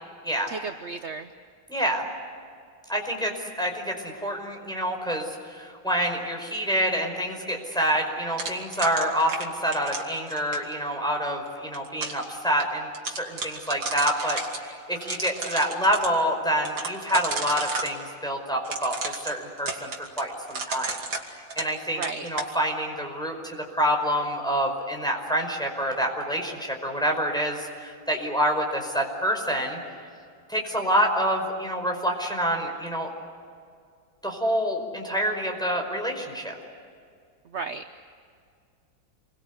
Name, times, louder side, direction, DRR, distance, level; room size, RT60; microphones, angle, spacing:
voice 1, 0.5-1.3 21.9-22.3 37.4-37.8, right 4 dB, 50° right, 7 dB, 0.9 m, -34 dB
voice 2, 1.7-2.1 2.9-19.9 20.2-21.0 21.3-29.8 30.5-33.1 34.2-36.5, equal, ahead, 1 dB, 5.1 m, -27 dB
sound 1, 8.4-10.7 11.5-12.2 12.6-12.7 12.9-14.6 15.0-16.1 16.7-17.9 18.6-21.8 22.0-22.5, right 3 dB, 70° right, 3.4 m, -32 dB
28.5 x 23.5 x 8.3 m, 2.2 s
omnidirectional pair, 2.2 m